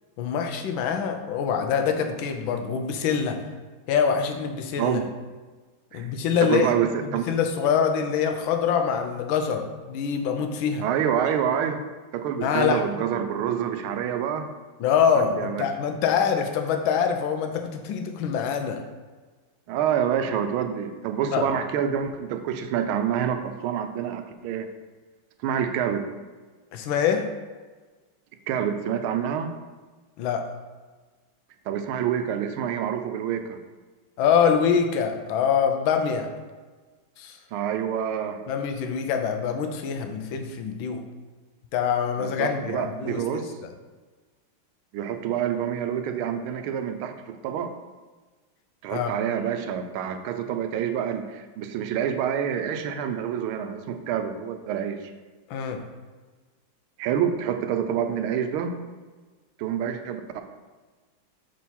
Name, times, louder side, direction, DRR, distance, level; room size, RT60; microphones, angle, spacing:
voice 1, 0.2-3.4 3.9-5.0 5.9-6.7 7.0-10.8 12.4-12.8 14.8-18.8 21.3-21.5 26.7-27.3 30.2-30.5 34.2-36.3 37.2-37.4 38.5-41.0 41.7-43.4 48.9-49.1 55.5-55.8, left 7 dB, 75° left, 5 dB, 1.4 m, -24 dB
voice 2, 4.8-5.1 5.9-6.1 6.4-7.3 10.8-11.8 12.1-14.5 15.1-15.6 19.7-24.7 25.4-26.0 28.5-29.5 31.7-33.6 37.5-38.4 42.2-43.5 44.9-47.7 48.8-55.0 57.0-58.8 59.6-60.4, right 9 dB, 85° right, 7 dB, 1.4 m, -27 dB
6.0 x 3.7 x 4.2 m, 1.3 s
omnidirectional pair, 2.3 m